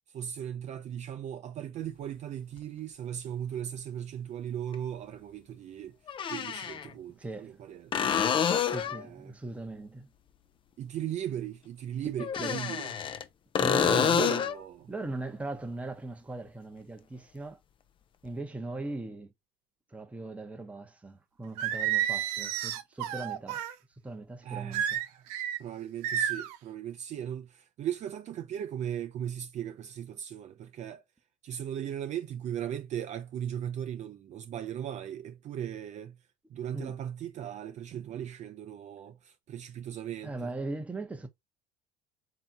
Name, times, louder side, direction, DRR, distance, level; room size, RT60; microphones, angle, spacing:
voice 1, 0.1-6.0 6.3-7.9 8.8-9.3 10.8-12.9 13.8-14.9 24.4-25.3 25.6-31.0 31.4-36.2 36.5-40.5, right 10 dB, 40° right, 0.5 m, -37 dB
sound 1, 2.6-2.7 4.7-4.8 6.1-6.9 7.9-9.1 12.2-13.2 13.6-14.6 18.3-18.4, left 8 dB, 30° left, 0.4 m, -28 dB
voice 2, 7.1-7.6 8.7-10.1 12.4-12.7 13.6-14.2 14.9-17.6 18.2-19.3 19.9-23.6 24.0-24.8 36.7-36.9 40.2-41.3, right 2 dB, 5° right, 0.8 m, -39 dB
Singing, 21.6-23.7 24.7-25.6 26.0-26.6, right 10 dB, 80° right, 0.8 m, -30 dB
3.4 x 2.8 x 3.8 m
supercardioid pair, 120°, 19 cm